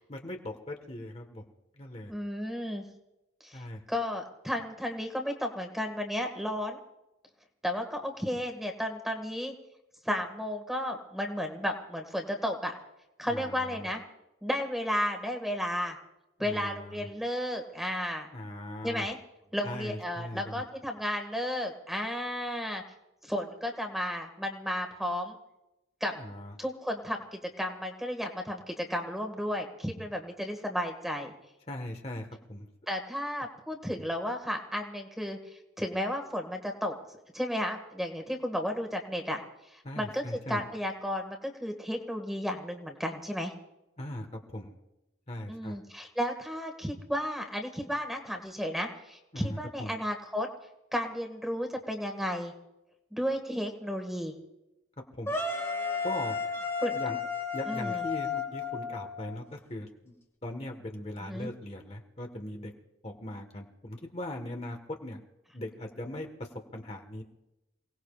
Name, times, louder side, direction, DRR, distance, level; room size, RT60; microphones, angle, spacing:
voice 1, 0.1-1.4 1.8-2.1 3.5-3.8 13.3-13.9 16.4-17.1 18.3-19.1 19.6-20.6 26.2-26.5 31.7-32.7 39.8-40.6 44.0-44.7 45.3-45.8 49.3-50.0 55.2-55.3 56.0-56.4 56.9-57.2 57.5-60.1 60.4-62.7 63.0-65.2 65.5-67.2, left 1 dB, 30° left, 4 dB, 1.4 m, -39 dB
voice 2, 2.1-2.8 3.4-6.8 7.6-9.5 10.0-12.7 13.2-14.0 14.4-16.0 16.4-18.3 18.8-19.2 19.5-22.8 23.2-25.4 26.0-26.1 26.6-31.3 32.9-35.4 35.8-37.0 37.3-39.4 39.7-43.5 45.5-50.5 50.9-52.5 53.1-54.3 56.8-57.0 57.7-58.0 61.2-61.5, equal, ahead, 4 dB, 1.8 m, -33 dB
sound 1, 55.3-59.4, left 5 dB, 15° left, 1.8 m, -33 dB
28.5 x 18.5 x 2.5 m, 0.94 s
head